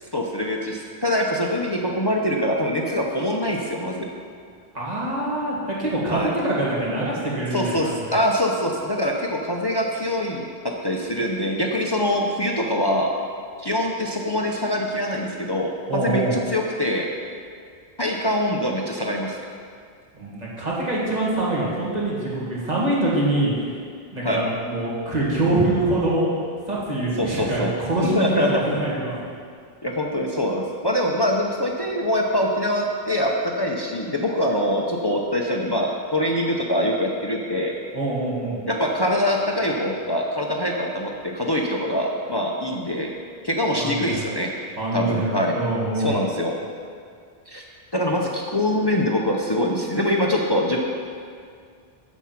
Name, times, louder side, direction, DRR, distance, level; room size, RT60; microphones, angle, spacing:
voice 1, 0.0-4.1 6.1-6.3 7.5-13.1 13.6-17.1 18.0-19.4 24.2-24.4 27.2-27.7 28.0-28.5 29.8-37.7 38.7-43.1 43.4-44.5 44.9-45.6 46.0-46.5 47.5-47.6 47.9-50.8, left 1 dB, 25° left, 0 dB, 0.7 m, -24 dB
voice 2, 4.7-7.9 15.9-16.3 20.1-23.6 24.1-26.3 26.7-29.2 37.9-38.6 43.7-44.2 44.8-46.1, right 2 dB, 40° right, -6 dB, 2.1 m, -24 dB
8.4 x 7.2 x 5.9 m, 2.2 s
omnidirectional pair, 1.1 m